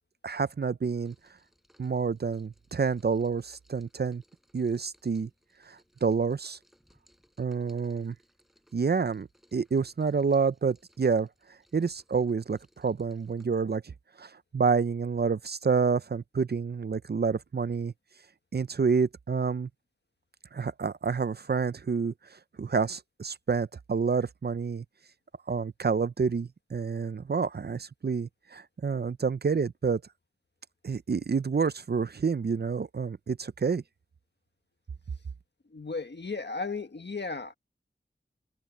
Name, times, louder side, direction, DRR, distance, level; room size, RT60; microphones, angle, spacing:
voice 1, 0.2-1.1 1.8-4.2 4.5-5.3 5.7-6.6 7.4-8.2 8.7-11.3 11.7-13.8 14.2-17.9 18.5-19.7 20.5-24.8 25.5-30.0 30.8-33.8, right 5 dB, 60° right, 0.6 m, -28 dB
Rain, 1.0-13.5, equal, ahead, 5.6 m, -67 dB
voice 2, 35.7-37.5, left 4 dB, 65° left, 1.6 m, -35 dB
wide cardioid pair, 50°, 19 cm